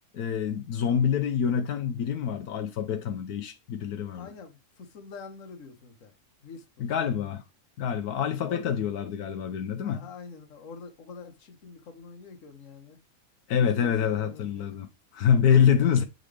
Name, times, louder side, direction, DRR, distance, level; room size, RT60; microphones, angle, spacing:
voice 1, 0.1-4.3 6.8-7.4 7.8-10.1 13.5-16.0, left 8 dB, 85° left, 1.3 m, -26 dB
voice 2, 4.1-6.1 6.4-7.1 8.4-8.7 9.8-13.0 13.6-14.8 15.8-16.0, left 5 dB, 60° left, 1.5 m, -45 dB
8.1 x 3.9 x 3.3 m
omnidirectional pair, 1.6 m